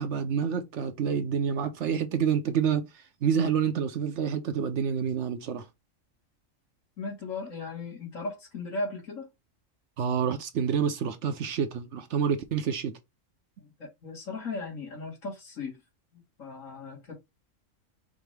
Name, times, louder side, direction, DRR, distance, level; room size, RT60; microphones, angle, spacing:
voice 1, 0.0-2.9 3.2-5.7 10.0-13.0, right 7 dB, 65° right, 0.9 m, -28 dB
voice 2, 7.0-9.3 13.6-15.8 16.1-17.1, left 3 dB, 75° left, 2.4 m, -37 dB
5.0 x 2.7 x 3.3 m
omnidirectional pair, 1.4 m